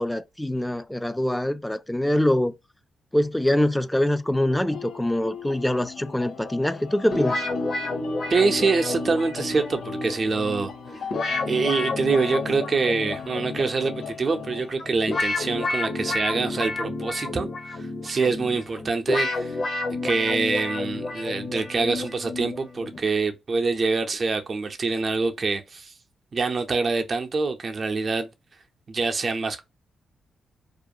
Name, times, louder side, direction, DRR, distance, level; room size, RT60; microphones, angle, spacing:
voice 1, 0.0-2.5 3.1-7.4, left 1 dB, 10° left, 0.4 m, -24 dB
sound 1, 4.5-14.7, left 6 dB, 75° left, 0.4 m, -40 dB
sound 2, 7.1-23.0, left 2 dB, 55° left, 0.8 m, -30 dB
voice 2, 8.3-10.7 11.5-19.6 20.0-25.9 26.3-28.3 28.9-29.6, right 4 dB, 50° right, 0.5 m, -25 dB
2.4 x 2.2 x 2.6 m
supercardioid pair, 50°, 0 cm